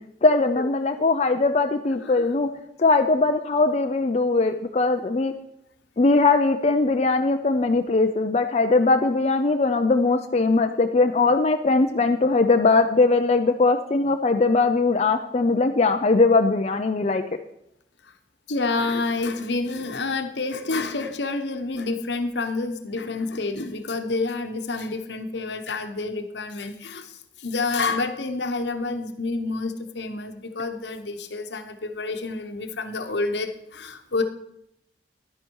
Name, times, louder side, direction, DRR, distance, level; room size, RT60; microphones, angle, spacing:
voice 1, 0.2-2.5 2.8-5.3 6.0-17.2, left 3 dB, 40° left, 6 dB, 0.5 m, -20 dB
voice 2, 18.5-34.2, left 3 dB, 80° left, 7 dB, 1.0 m, -28 dB
10.5 x 9.9 x 4.6 m, 0.80 s
head